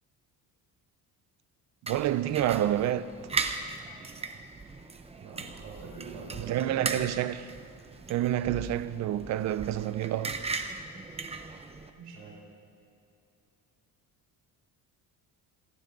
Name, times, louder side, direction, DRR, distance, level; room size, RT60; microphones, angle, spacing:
voice 1, 1.8-3.1 6.4-7.6 8.1-10.4, right 12 dB, 45° right, 0.5 m, -28 dB
sound 1, 1.9-11.9, right 4 dB, 15° right, 0.8 m, -38 dB
voice 2, 5.2-6.8 12.0-12.4, right 4 dB, 90° right, 5.0 m, -44 dB
27.0 x 13.5 x 3.9 m
cardioid pair, 165°, 37 cm